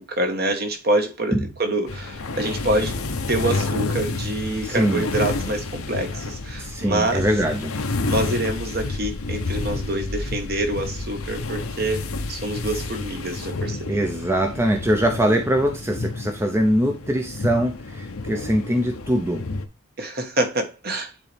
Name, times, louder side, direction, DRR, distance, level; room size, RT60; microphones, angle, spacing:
voice 1, 0.0-3.0 3.3-7.3 8.1-14.0 20.0-21.1, right 1 dB, 45° right, 1.3 m, -26 dB
sound 1, 1.9-19.6, left 3 dB, 85° left, 0.9 m, -30 dB
voice 2, 4.6-5.0 6.6-7.7 13.9-19.5, right 1 dB, 10° right, 0.6 m, -22 dB
9.7 x 4.1 x 3.4 m
head